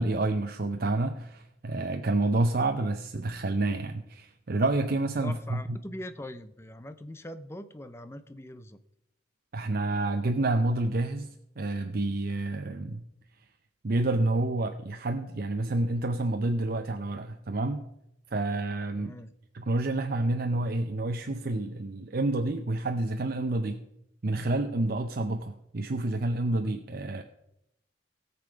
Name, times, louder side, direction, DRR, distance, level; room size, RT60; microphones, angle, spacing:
voice 1, 0.0-5.8 9.5-13.1 13.8-17.9 18.3-19.1 19.5-23.8 24.2-27.2, right 2 dB, 55° right, 6 dB, 0.6 m, -29 dB
voice 2, 5.2-8.8 18.9-19.3, left 1 dB, 15° left, 11 dB, 0.6 m, -42 dB
17.5 x 6.9 x 5.1 m, 0.81 s
head